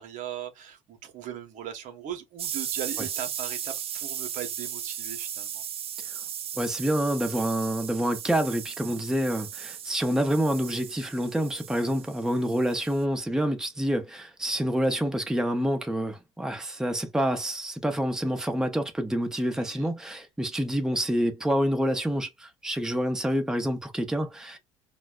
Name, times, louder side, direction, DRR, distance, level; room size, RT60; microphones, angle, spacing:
voice 1, 0.0-5.6 19.5-19.9, right 10 dB, 60° right, 0.8 m, -39 dB
sound 1, 2.4-13.0, right 9 dB, 40° right, 0.5 m, -36 dB
voice 2, 6.5-24.6, equal, 5° right, 0.7 m, -27 dB
3.9 x 2.2 x 2.3 m
hypercardioid pair, 70°, 15 cm